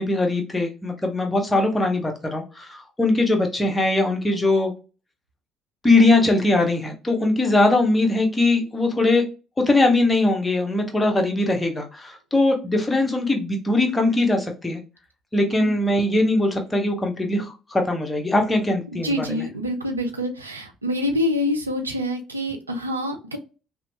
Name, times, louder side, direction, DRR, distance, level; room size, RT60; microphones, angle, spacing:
voice 1, 0.0-4.7 5.8-9.2 9.7-14.8 15.3-19.4, left 2 dB, 15° left, 2 dB, 0.8 m, -21 dB
voice 2, 18.9-23.4, left 1 dB, 85° right, 4 dB, 0.4 m, -26 dB
2.8 x 2.2 x 2.7 m, 0.31 s
figure-of-eight pair, 55°, 0 cm